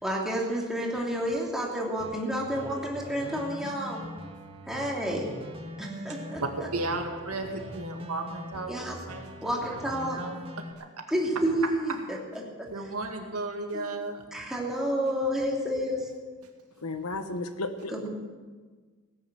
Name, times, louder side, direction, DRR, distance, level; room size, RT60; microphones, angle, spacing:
voice 1, 0.0-4.0 4.7-5.3 5.8-6.4 8.7-9.0 9.4-10.2 11.1-12.0 12.6-12.7 13.7-14.0 14.3-16.1 17.9-18.1, equal, ahead, 2.9 m, -30 dB
sound 1, 2.0-10.7, equal, 25° right, 1.5 m, -43 dB
voice 2, 6.7-9.4 9.6-9.8 10.1-10.4 10.8-10.9 12.7-14.2, right 2 dB, 75° right, 2.1 m, -34 dB
voice 3, 16.8-18.1, left 2 dB, 80° left, 1.3 m, -34 dB
18.0 x 9.9 x 7.5 m
head